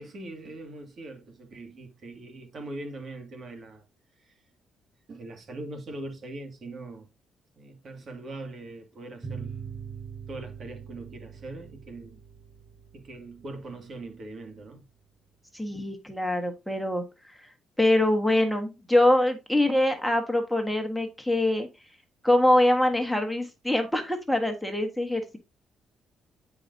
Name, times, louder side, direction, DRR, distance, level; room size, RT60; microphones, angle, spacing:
voice 1, 0.0-3.9 4.2-4.4 5.1-7.1 7.6-9.6 10.3-12.2 12.9-14.8, right 2 dB, 50° right, 2.2 m, -41 dB
sound 1, 9.2-14.4, right 6 dB, 15° right, 3.9 m, -42 dB
voice 2, 15.5-17.0 17.8-21.7 22.2-25.4, left 1 dB, ahead, 1.5 m, -24 dB
9.7 x 4.9 x 2.7 m
cardioid pair, 90°, 0 cm